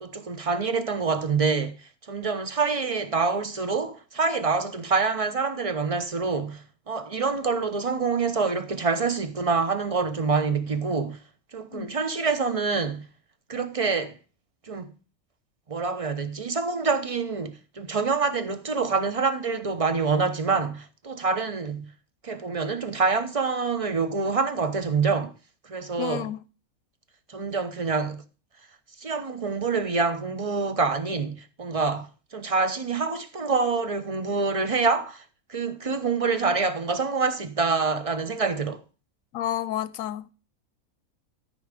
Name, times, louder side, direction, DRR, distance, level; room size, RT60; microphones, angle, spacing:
voice 1, 0.0-1.7 2.1-11.2 11.5-13.0 13.5-14.2 14.7-14.9 15.7-21.9 22.2-25.3 25.6-26.3 27.3-28.2 29.0-35.2 35.5-38.8, right 4 dB, 30° right, 0.7 m, -26 dB
voice 2, 26.0-26.4 39.3-40.3, left 12 dB, 70° left, 1.0 m, -31 dB
13.5 x 5.4 x 5.0 m
omnidirectional pair, 1.5 m